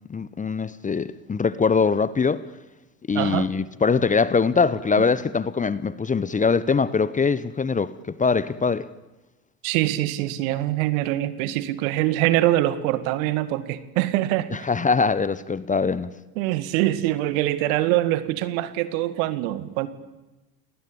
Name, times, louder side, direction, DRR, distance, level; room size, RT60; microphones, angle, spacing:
voice 1, 0.1-2.4 3.1-7.9 8.2-8.8 14.6-16.1, left 5 dB, 15° left, 1.0 m, -22 dB
voice 2, 3.1-3.5 9.6-14.5 16.4-19.9, right 15 dB, 60° right, 2.1 m, -24 dB
30.0 x 19.5 x 8.8 m
figure-of-eight pair, 75°, 45 cm